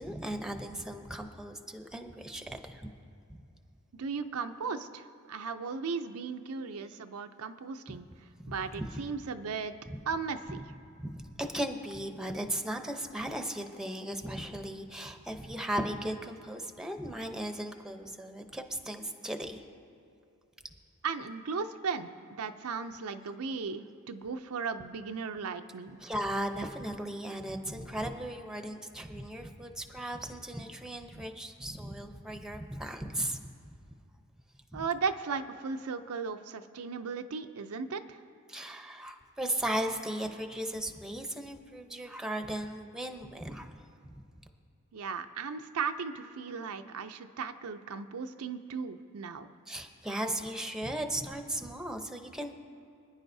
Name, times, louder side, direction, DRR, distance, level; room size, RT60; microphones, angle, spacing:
voice 1, 0.0-2.9 3.3-3.4 8.4-8.9 9.9-10.0 11.0-19.6 26.0-33.4 34.7-34.8 38.5-43.8 44.0-44.2 49.7-52.6, right 1 dB, 5° right, 5 dB, 0.7 m, -37 dB
voice 2, 3.9-8.1 8.5-9.7 10.1-10.6 21.0-22.1 22.4-26.0 34.7-38.2 44.9-49.5, right 5 dB, 80° right, 8 dB, 0.5 m, -36 dB
26.0 x 10.0 x 2.7 m, 2.6 s
head